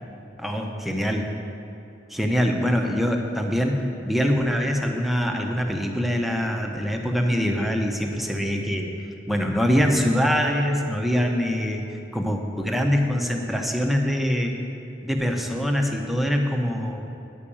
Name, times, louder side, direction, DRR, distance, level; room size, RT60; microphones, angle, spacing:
voice 1, 0.4-1.3 2.1-8.9 9.3-11.8 12.1-14.5 15.0-17.0, equal, ahead, 2 dB, 0.8 m, -24 dB
10.0 x 5.8 x 8.6 m, 2.6 s
head